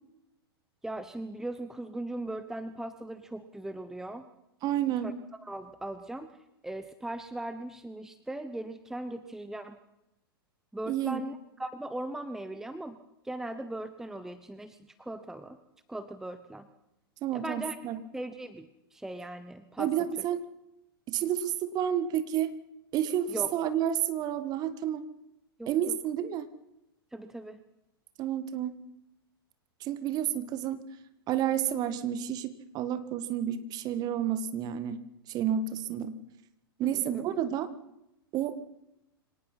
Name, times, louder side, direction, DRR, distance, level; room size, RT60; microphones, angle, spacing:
voice 1, 0.8-4.2 5.0-5.1 5.4-6.3 6.6-9.8 10.7-13.0 13.2-15.6 15.9-16.7 17.3-17.8 18.1-19.9 23.3-23.5 25.6-26.0 27.1-27.6 36.8-37.3, right 1 dB, 5° right, 11 dB, 1.0 m, -39 dB
voice 2, 4.6-5.2 10.9-11.2 17.2-18.0 19.8-20.4 21.1-22.5 22.9-25.0 25.7-26.5 28.2-28.7 29.8-30.8 31.3-35.0 35.3-36.2 36.8-37.7 38.3-38.5, right 10 dB, 30° right, 12 dB, 1.8 m, -30 dB
25.0 x 18.5 x 5.7 m, 0.87 s
figure-of-eight pair, 100°, 13 cm